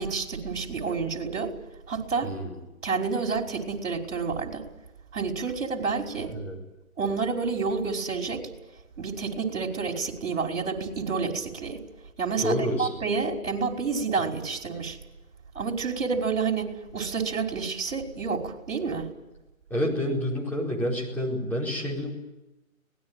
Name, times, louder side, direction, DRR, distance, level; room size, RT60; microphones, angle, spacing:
voice 1, 0.0-1.5 1.9-2.3 2.8-4.6 5.1-6.3 7.0-8.5 9.0-11.8 12.2-15.0 15.6-19.1, right 5 dB, 60° right, 3 dB, 5.5 m, -29 dB
voice 2, 2.2-2.6 6.3-6.6 12.4-12.9 19.7-22.1, equal, 5° left, -5 dB, 4.5 m, -28 dB
24.5 x 19.5 x 9.2 m, 1.0 s
figure-of-eight pair, 155°, 42 cm